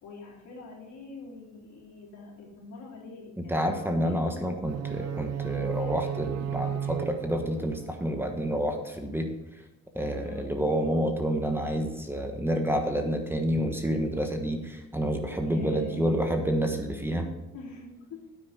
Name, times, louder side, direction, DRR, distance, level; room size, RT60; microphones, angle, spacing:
voice 1, 0.0-3.7 4.0-4.2 10.2-10.5 15.4-16.2 17.5-18.2, left 3 dB, 75° left, -2 dB, 3.6 m, -44 dB
voice 2, 3.4-9.3 9.9-17.3, equal, 5° right, 4 dB, 1.3 m, -29 dB
sound 1, 4.6-8.6, right 9 dB, 60° right, 0.8 m, -34 dB
9.4 x 8.8 x 4.2 m, 1.0 s
cardioid pair, 90°, 30 cm